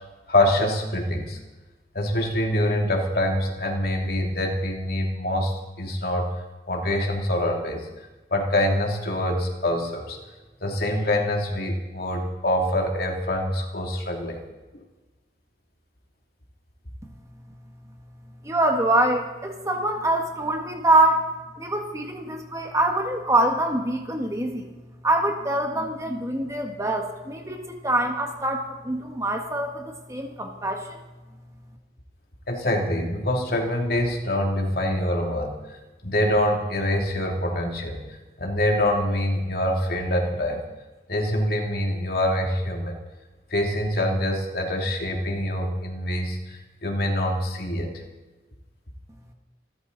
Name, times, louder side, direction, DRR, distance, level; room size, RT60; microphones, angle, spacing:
voice 1, 0.3-1.4 1.9-6.3 6.7-7.9 8.3-10.2 10.6-14.4 14.7-14.8 32.5-35.8 36.0-38.1 38.4-40.6 41.1-42.9 43.5-47.9, left 1 dB, 55° left, 1 dB, 2.9 m, -25 dB
voice 2, 18.4-21.3 21.6-24.7 25.0-31.0, right 1 dB, 15° right, 3 dB, 1.6 m, -24 dB
27.0 x 13.0 x 4.1 m, 1.2 s
head